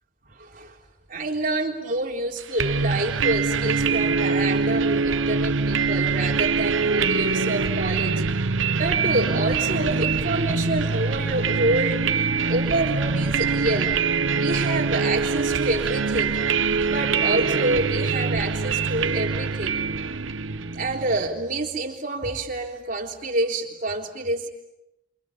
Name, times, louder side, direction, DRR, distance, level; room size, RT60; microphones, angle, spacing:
voice 1, 0.3-0.8 1.1-8.2 8.8-14.0 14.3-16.4 16.8-19.8 20.7-24.5, right 2 dB, 45° right, 1 dB, 3.7 m, -27 dB
sound 1, 2.6-21.3, right 4 dB, 80° right, 0.9 m, -24 dB
29.0 x 28.5 x 7.1 m, 0.90 s
head